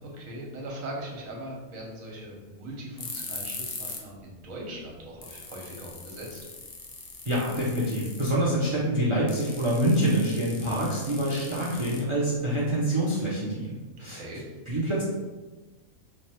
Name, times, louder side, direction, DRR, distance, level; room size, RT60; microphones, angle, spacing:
voice 1, 0.0-6.5 14.0-14.4, right 1 dB, 75° right, -2 dB, 1.2 m, -40 dB
sound 1, 3.0-4.1 4.4-4.5 4.9-5.0 5.2-8.4 9.3-12.4, left 4 dB, 55° left, 0.5 m, -40 dB
voice 2, 7.2-14.2 14.7-15.0, right 1 dB, 35° right, -6 dB, 0.5 m, -26 dB
3.2 x 2.3 x 4.2 m, 1.2 s
omnidirectional pair, 1.4 m